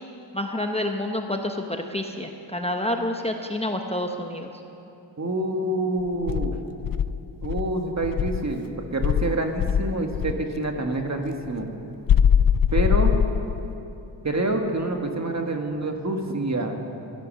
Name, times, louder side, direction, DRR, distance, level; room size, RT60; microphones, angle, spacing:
voice 1, 0.3-4.5, left 1 dB, 15° left, 3 dB, 0.8 m, -28 dB
voice 2, 5.2-6.6 7.4-11.7 12.7-13.1 14.2-16.8, right 2 dB, 40° right, 3 dB, 1.6 m, -27 dB
Insect, 6.3-8.5 9.0-10.4 12.1-13.7, left 8 dB, 50° left, 0.5 m, -22 dB
16.0 x 12.5 x 6.5 m, 2.8 s
wide cardioid pair, 95°, 44 cm